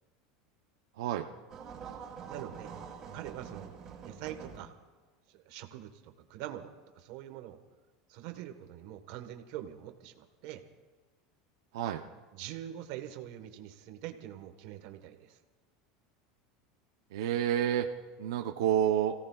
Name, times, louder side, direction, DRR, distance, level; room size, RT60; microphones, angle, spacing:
sound 1, 1.5-4.6, right 6 dB, 25° right, 3.0 m, -45 dB
voice 1, 2.3-2.7 3.1-3.7 4.0-4.7 5.3-6.7 6.9-7.6 8.1-10.6 12.3-15.4, right 12 dB, 55° right, 7 dB, 1.3 m, -44 dB
voice 2, 17.1-17.9 18.2-19.1, right 10 dB, 80° right, 3 dB, 0.8 m, -29 dB
29.5 x 17.0 x 2.4 m, 1.4 s
supercardioid pair, 170°, 2 cm